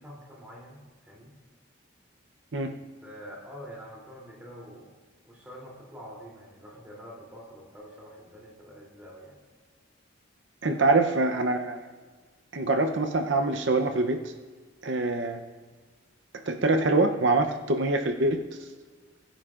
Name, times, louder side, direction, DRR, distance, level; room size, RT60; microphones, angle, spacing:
voice 1, 0.0-1.3 3.0-4.9 5.2-9.4 10.6-10.9, equal, 10° right, -4 dB, 3.0 m, -46 dB
voice 2, 10.6-11.8 12.5-14.3 14.8-15.4 16.5-18.4, right 2 dB, 60° right, 6 dB, 0.7 m, -24 dB
21.5 x 10.0 x 2.5 m, 1.5 s
head